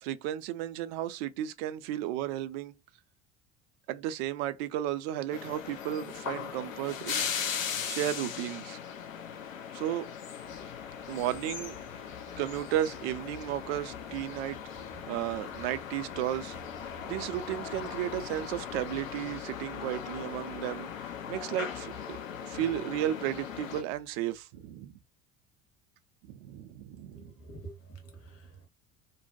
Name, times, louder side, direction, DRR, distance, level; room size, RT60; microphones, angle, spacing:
voice 1, 0.0-2.7 3.9-7.3 7.8-8.8 9.7-10.0 11.1-11.8 12.4-14.6 15.1-16.6 17.1-22.2 22.5-25.0 26.3-27.3, right 12 dB, 50° right, 0.4 m, -34 dB
sound 1, 5.3-23.8, left 8 dB, 75° left, 0.6 m, -39 dB
sound 2, 10.4-19.1, left 1 dB, 15° left, 0.6 m, -55 dB
sound 3, 11.0-24.7, left 6 dB, 50° left, 1.4 m, -54 dB
voice 2, 27.1-28.7, right 3 dB, 35° left, 1.2 m, -47 dB
2.6 x 2.1 x 2.6 m
figure-of-eight pair, 65°, 40 cm